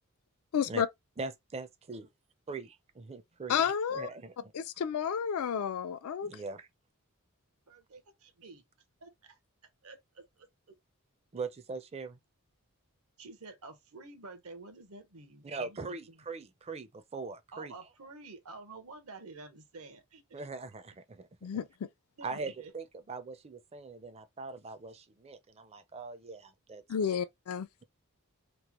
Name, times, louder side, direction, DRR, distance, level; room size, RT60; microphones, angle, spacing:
voice 1, 0.5-0.9 3.5-4.1 4.5-6.3 21.4-21.9 26.9-27.7, left 7 dB, 70° left, 0.4 m, -31 dB
voice 2, 1.2-2.1 2.5-3.6 3.9-4.3 6.2-6.7 11.3-12.2 15.4-17.7 20.3-21.3 22.2-26.8, right 4 dB, 30° right, 0.5 m, -41 dB
voice 3, 7.7-8.6 9.0-9.4 9.8-10.7 13.2-16.2 17.5-20.5 22.2-22.7, right 3 dB, 75° right, 0.9 m, -50 dB
3.1 x 2.1 x 2.9 m
head